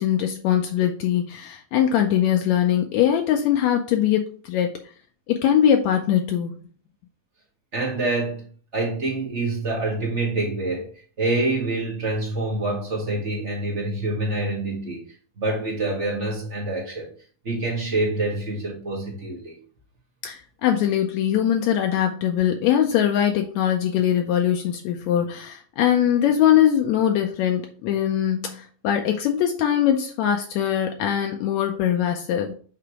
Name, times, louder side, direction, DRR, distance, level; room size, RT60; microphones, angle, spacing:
voice 1, 0.0-4.7 5.3-6.6 20.2-32.5, left 10 dB, 90° left, 4 dB, 1.6 m, -21 dB
voice 2, 7.7-8.4 8.7-10.9 11.2-15.0 15.4-17.1 17.4-19.6, right 2 dB, 50° right, -3 dB, 0.8 m, -26 dB
8.3 x 2.9 x 4.7 m, 0.43 s
omnidirectional pair, 3.9 m